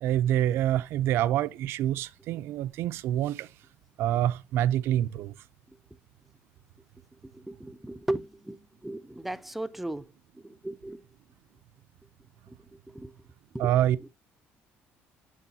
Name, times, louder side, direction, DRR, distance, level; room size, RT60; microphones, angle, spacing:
voice 1, 0.0-3.5 4.0-5.3 13.6-14.0, right 12 dB, 70° right, 0.4 m, -26 dB
voice 2, 7.2-11.0 12.5-13.1 13.5-13.7 14.0-14.1, right 1 dB, 5° right, 0.4 m, -37 dB
9.9 x 3.8 x 2.7 m
cardioid pair, 130°, 4 cm